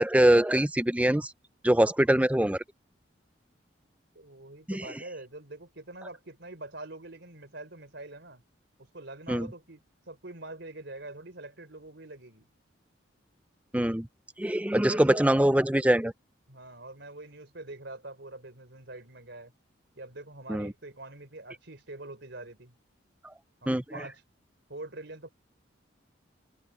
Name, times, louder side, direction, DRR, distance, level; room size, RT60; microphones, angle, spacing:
voice 1, 0.0-1.3 1.6-2.6 4.7-4.9 9.3-9.5 13.7-14.1 14.4-16.1 20.5-20.7 23.2-23.3 23.7-24.0, right 1 dB, 5° right, 0.6 m, -23 dB
voice 2, 4.1-8.4 8.8-9.8 10.1-12.5 14.7-15.3 16.5-19.5 20.0-22.7 23.6-24.2 24.7-25.3, right 2 dB, 60° right, 4.1 m, -44 dB
head